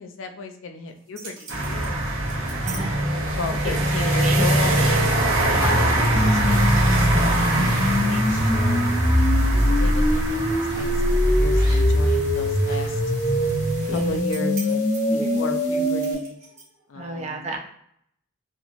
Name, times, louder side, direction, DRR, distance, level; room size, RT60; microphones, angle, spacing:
voice 1, 0.0-2.1 2.6-7.5 8.0-9.2 9.5-10.9 11.2-13.0 13.9-14.8 15.1-16.4 16.9-17.5, left 3 dB, 80° left, 5 dB, 0.4 m, -35 dB
sound 1, 0.9-2.8 3.2-3.7 4.3-4.5 4.7-5.5 6.0-6.2 6.5-6.7 7.2-8.9 9.4-9.6 10.7-11.0 11.5-12.1 12.4-16.9, right 3 dB, 50° right, 1.1 m, -42 dB
sound 2, 1.5-14.2, right 1 dB, 85° right, 0.8 m, -23 dB
voice 2, 2.6-3.2 3.9-4.5 4.8-5.0 5.4-5.6 7.5-7.9 13.8-14.2 15.0-15.4 17.0-17.6, right 3 dB, 35° right, 1 dB, 0.5 m, -33 dB
sound 3, 6.1-16.1, equal, 35° left, 0.8 m, -22 dB
2.9 x 2.6 x 2.5 m, 0.70 s
head